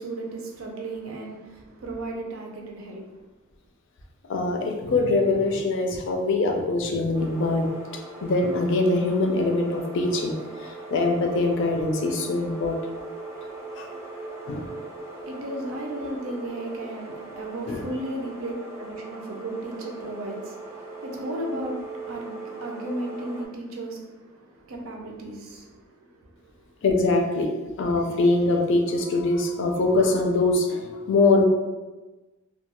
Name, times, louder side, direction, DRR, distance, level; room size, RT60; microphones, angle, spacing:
voice 1, 0.0-3.2 15.2-26.7, right 1 dB, 70° right, 1 dB, 0.5 m, -35 dB
voice 2, 4.3-7.7 8.2-12.8 13.8-13.9 14.5-14.7 17.7-17.9 26.8-27.5 27.8-31.4, left 2 dB, 60° left, 2 dB, 0.4 m, -23 dB
sound 1, 7.1-23.5, right 2 dB, 15° right, 0.4 m, -39 dB
2.3 x 2.2 x 2.9 m, 1.2 s
head